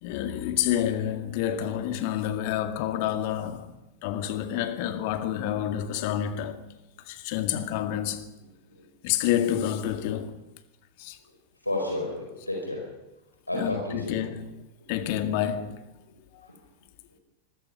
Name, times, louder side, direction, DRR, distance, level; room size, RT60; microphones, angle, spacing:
voice 1, 0.0-3.7 4.0-6.7 7.1-8.3 9.0-10.4 11.0-11.2 13.5-14.5 14.9-15.9 16.3-16.5, left 11 dB, 45° left, 1.9 m, -28 dB
voice 2, 11.6-12.9 13.5-14.2 16.4-16.5, left 1 dB, 85° left, 4.4 m, -31 dB
25.5 x 21.0 x 5.7 m
figure-of-eight pair, 90°, 0 cm